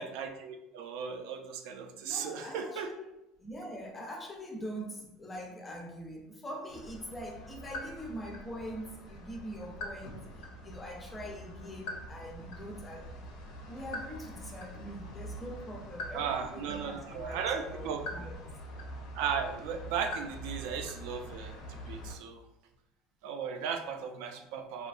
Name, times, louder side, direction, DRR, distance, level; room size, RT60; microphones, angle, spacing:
voice 1, 0.0-2.9 16.1-18.0 19.1-21.6 21.9-22.4 23.2-24.9, right 7 dB, 75° right, 5 dB, 0.3 m, -36 dB
voice 2, 2.0-13.3 13.7-18.5, equal, 15° left, 1 dB, 0.4 m, -43 dB
sound 1, 6.7-22.2, equal, 65° left, 0.5 m, -44 dB
2.7 x 2.3 x 2.4 m, 0.88 s
cardioid pair, 160°, 0 cm